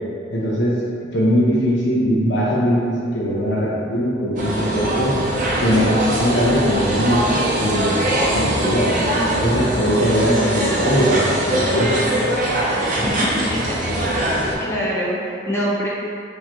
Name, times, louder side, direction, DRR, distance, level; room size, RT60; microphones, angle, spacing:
voice 1, 0.3-0.7 1.1-5.1 5.6-8.9 9.4-12.0, equal, 80° left, -6 dB, 0.7 m, -20 dB
sound 1, 4.4-14.5, right 1 dB, 50° right, 0.6 m, -21 dB
voice 2, 12.9-13.6 14.0-14.3 14.6-15.9, equal, 15° left, -6 dB, 0.7 m, -25 dB
4.1 x 2.9 x 2.9 m, 2.4 s
head